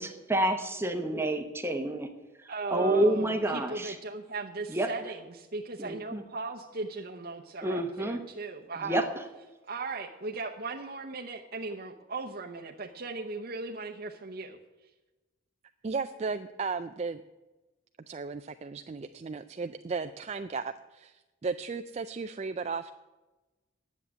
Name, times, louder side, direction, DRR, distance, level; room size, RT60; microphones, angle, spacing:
voice 1, 0.0-2.1 2.7-3.9 4.7-4.9 5.8-6.2 7.6-8.2 8.8-9.1, right 1 dB, 10° right, 6 dB, 0.9 m, -28 dB
voice 2, 2.5-9.1 9.7-14.6, right 3 dB, 50° right, 0 dB, 0.8 m, -37 dB
voice 3, 15.8-17.2 18.1-22.9, right 4 dB, 35° right, 8 dB, 0.4 m, -35 dB
10.0 x 7.3 x 9.4 m, 1.1 s
head